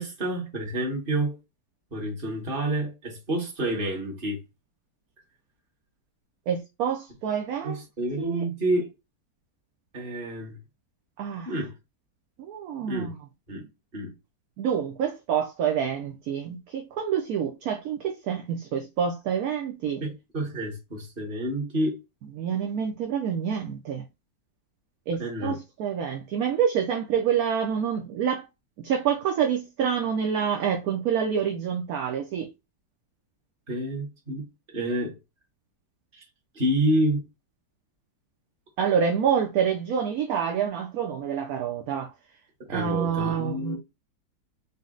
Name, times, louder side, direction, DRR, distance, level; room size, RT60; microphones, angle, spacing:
voice 1, 0.0-1.4 1.9-4.4 7.6-8.9 9.9-10.6 11.4-11.7 12.9-13.1 13.5-13.7 13.9-14.1 20.0-22.0 25.2-25.6 33.7-34.5 34.7-35.2 36.1-36.2 36.5-37.2 42.7-43.8, right 1 dB, 30° right, 1.4 m, -28 dB
voice 2, 6.5-7.8 8.2-8.4 11.2-11.5 12.4-13.1 14.6-20.0 22.4-24.1 25.1-28.4 28.8-32.5 38.8-42.1 42.7-43.8, right 8 dB, 65° right, 0.9 m, -27 dB
4.0 x 2.2 x 3.7 m
omnidirectional pair, 2.0 m